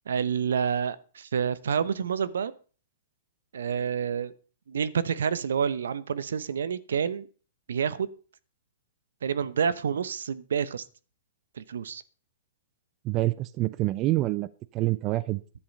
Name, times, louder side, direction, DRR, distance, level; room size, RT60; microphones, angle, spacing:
voice 1, 0.1-2.5 3.5-4.3 4.7-7.3 7.7-8.1 9.2-10.8 11.5-12.0, right 7 dB, 75° right, 0.9 m, -28 dB
voice 2, 13.0-14.5 14.7-15.4, right 17 dB, 35° right, 0.6 m, -26 dB
11.0 x 9.7 x 5.4 m
hypercardioid pair, 125°, 0 cm